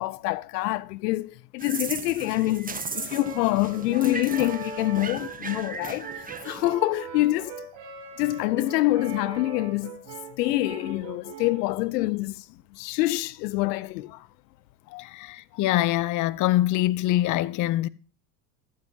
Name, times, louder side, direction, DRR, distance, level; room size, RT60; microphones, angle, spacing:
voice 1, 0.0-6.1 6.4-7.5 8.2-10.0 10.4-12.4 12.7-14.3 14.9-15.1, left 18 dB, 80° left, 0.6 m, -26 dB
sound 1, 1.6-6.8, right 4 dB, 15° right, 1.2 m, -36 dB
Brass instrument, 3.2-11.7, right 4 dB, 65° right, 3.1 m, -41 dB
voice 2, 15.0-17.9, left 15 dB, 40° left, 0.6 m, -24 dB
14.0 x 9.4 x 2.7 m
hypercardioid pair, 80°, 48 cm